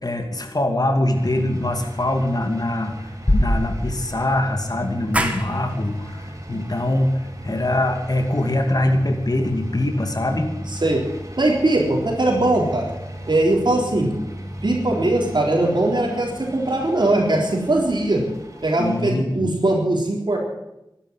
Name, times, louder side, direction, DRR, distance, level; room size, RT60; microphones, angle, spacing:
voice 1, 0.0-10.5 18.8-19.5, left 1 dB, 50° left, 4 dB, 2.5 m, -23 dB
sound 1, 1.1-19.0, equal, 40° right, 2.9 m, -36 dB
sound 2, 3.3-5.1, left 1 dB, 35° left, 2.2 m, -23 dB
sound 3, 5.1-10.5, right 1 dB, 15° right, 2.1 m, -33 dB
voice 2, 11.4-12.9 13.3-14.1 14.6-18.2 18.6-20.4, right 2 dB, 65° right, 0 dB, 4.0 m, -20 dB
12.5 x 11.0 x 9.6 m, 0.89 s
wide cardioid pair, 50°, 8 cm